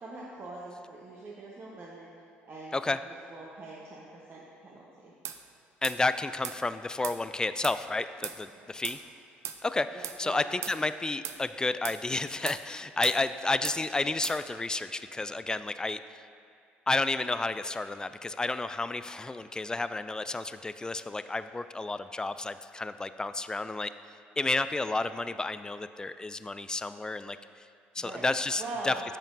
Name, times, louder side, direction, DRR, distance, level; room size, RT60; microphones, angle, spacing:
voice 1, 0.0-2.1 2.4-3.0 3.3-5.1 8.6-8.7 9.9-10.4 28.0-28.3 28.6-29.0, right 2 dB, 40° right, -5 dB, 1.1 m, -43 dB
sound 1, 5.2-5.4 5.8-6.0 6.4-6.6 7.0-7.2 7.6-7.8 8.2-8.4 8.8-9.0 9.4-9.6 10.0-10.2 10.6-10.8 11.2-11.4 11.8-12.0 12.5-12.6 13.0-13.2 13.6-13.8 14.2-14.4, right 10 dB, 55° right, 0.5 m, -37 dB
voice 2, 5.8-9.0 9.6-9.9 10.2-16.2 16.9-23.9 24.4-27.4 27.9-28.9, left 3 dB, 15° left, 12 dB, 0.3 m, -31 dB
10.0 x 7.1 x 2.7 m, 2.4 s
hypercardioid pair, 55°, 6 cm